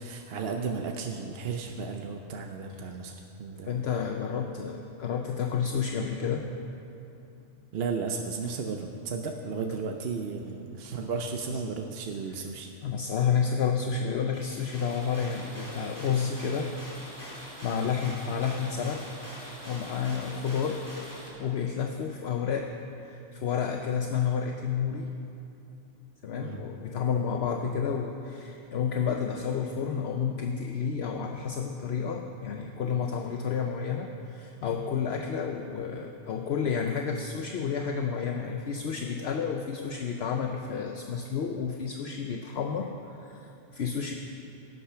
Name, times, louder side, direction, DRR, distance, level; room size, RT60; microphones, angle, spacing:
voice 1, 0.0-3.8 7.7-12.7 17.8-17.9 26.4-26.6, right 5 dB, 60° right, 3 dB, 0.9 m, -34 dB
voice 2, 3.7-6.4 12.8-16.8 17.1-19.1 19.6-20.9 21.4-22.7 23.0-25.1 26.2-44.1, left 6 dB, 65° left, 4 dB, 0.9 m, -30 dB
sound 1, 14.3-21.3, equal, 15° left, 2.8 m, -44 dB
16.0 x 9.4 x 5.7 m, 2.8 s
omnidirectional pair, 1.2 m